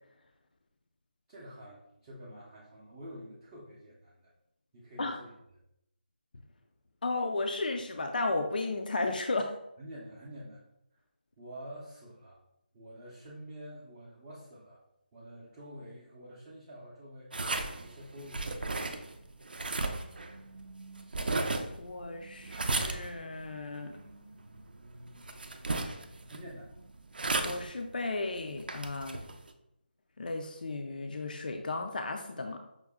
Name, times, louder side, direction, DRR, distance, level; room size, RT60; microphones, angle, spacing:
voice 1, 1.3-4.3 4.7-5.3 9.8-10.6 11.4-12.4 12.7-14.8 15.1-17.3 17.7-18.7 26.2-26.7, equal, 15° right, -8 dB, 0.5 m, -48 dB
voice 2, 7.0-9.5 21.8-23.9 27.4-29.2 30.2-32.6, left 2 dB, 55° left, 4 dB, 0.4 m, -34 dB
sound 1, 17.3-29.5, right 2 dB, 60° right, 0.5 m, -36 dB
5.6 x 2.1 x 3.5 m, 0.83 s
figure-of-eight pair, 170°, 6 cm